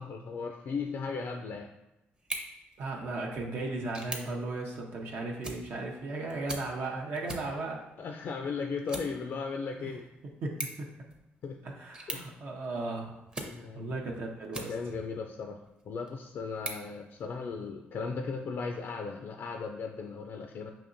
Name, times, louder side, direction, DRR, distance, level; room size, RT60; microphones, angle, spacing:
voice 1, 0.0-1.7 8.0-10.0 11.4-11.6 12.1-12.3 13.4-14.0 14.6-15.6 15.9-20.7, left 5 dB, 60° left, 3 dB, 0.3 m, -36 dB
sound 1, 2.1-15.1 15.6-17.7, right 1 dB, 25° right, 0.7 m, -45 dB
voice 2, 2.8-7.8 9.8-9.9 10.4-10.9 11.6-13.2 13.7-14.7, right 2 dB, 65° right, -1 dB, 0.6 m, -36 dB
5.1 x 2.8 x 2.6 m, 0.94 s
cardioid pair, 80°, 4 cm